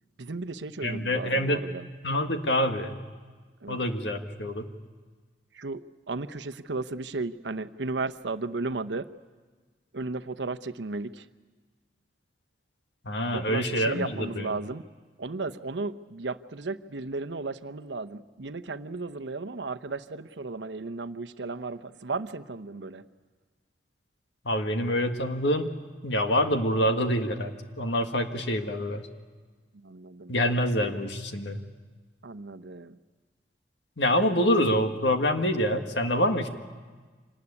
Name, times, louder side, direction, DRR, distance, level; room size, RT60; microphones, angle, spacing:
voice 1, 0.2-1.9 3.6-3.8 5.5-5.8 6.1-9.1 9.9-11.3 13.3-14.8 15.2-23.0 29.8-30.3 32.2-33.0, right 3 dB, 90° right, 9 dB, 0.8 m, -34 dB
voice 2, 0.8-1.6 2.0-3.0 3.7-4.7 13.0-14.5 24.4-25.7 26.0-29.0 30.3-31.6 34.0-36.5, equal, 90° left, 6 dB, 1.8 m, -26 dB
26.0 x 19.0 x 9.8 m, 1.4 s
head